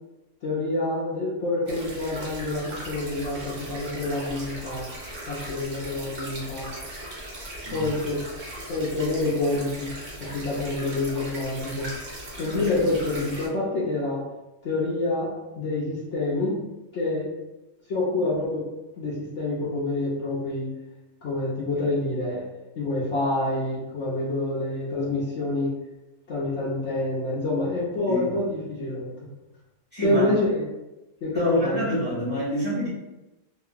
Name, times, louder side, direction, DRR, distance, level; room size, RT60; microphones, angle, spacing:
voice 1, 0.4-4.9 5.2-6.7 7.7-8.2 8.7-9.9 10.3-11.9 12.4-14.2 14.6-16.6 16.9-17.3 17.9-18.6 19.0-20.7 21.2-22.4 22.8-25.7 26.3-29.1 30.0-30.6 31.2-31.8, left 2 dB, 60° left, -7 dB, 0.8 m, -27 dB
sound 1, 1.7-13.5, right 1 dB, 45° right, 1.0 m, -38 dB
voice 2, 29.9-30.3 31.3-32.9, equal, 10° right, -9 dB, 1.2 m, -27 dB
2.9 x 2.5 x 2.4 m, 1.0 s
omnidirectional pair, 1.5 m